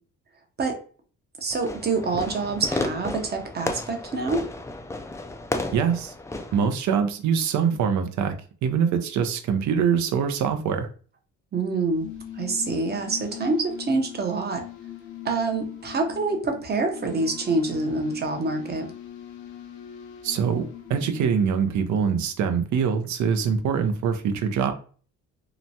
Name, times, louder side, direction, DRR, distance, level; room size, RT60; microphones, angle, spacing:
voice 1, 1.4-4.5 11.5-12.1 12.4-14.6 15.2-18.9, right 3 dB, 35° right, 4 dB, 0.7 m, -26 dB
Fireworks, 1.5-6.7, left 2 dB, 10° left, 0.3 m, -32 dB
voice 2, 5.7-6.1 6.5-8.4 8.6-10.9 20.2-20.6 20.9-24.7, right 7 dB, 70° right, 7 dB, 0.5 m, -23 dB
sound 1, 11.8-22.3, left 10 dB, 85° left, 0.6 m, -41 dB
2.9 x 2.2 x 2.6 m, 0.42 s
cardioid pair, 90°, 30 cm